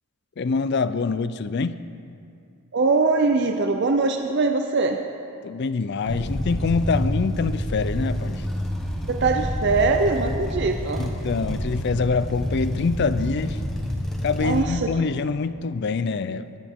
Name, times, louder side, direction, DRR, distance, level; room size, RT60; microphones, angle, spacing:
voice 1, 0.4-1.8 5.4-8.4 11.0-13.6 14.2-16.5, left 4 dB, 50° left, 14 dB, 0.4 m, -25 dB
voice 2, 2.7-5.0 9.1-11.0 14.4-14.9, right 3 dB, 50° right, 5 dB, 0.6 m, -22 dB
sound 1, 6.0-14.6, equal, ahead, 1.2 m, -28 dB
21.0 x 9.3 x 3.6 m, 2.4 s
head